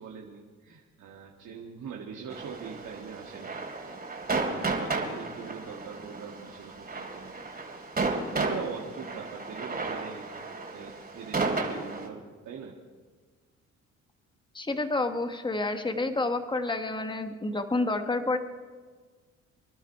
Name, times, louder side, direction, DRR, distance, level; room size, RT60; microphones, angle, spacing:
voice 1, 0.0-7.6 8.1-10.2 10.7-12.8, right 6 dB, 70° right, 0 dB, 1.9 m, -42 dB
sound 1, 2.3-12.1, right 3 dB, 30° right, 3.1 m, -33 dB
voice 2, 14.5-18.4, left 2 dB, 15° left, 7 dB, 1.4 m, -29 dB
26.5 x 11.5 x 4.7 m, 1.5 s
cardioid pair, 90°, 30 cm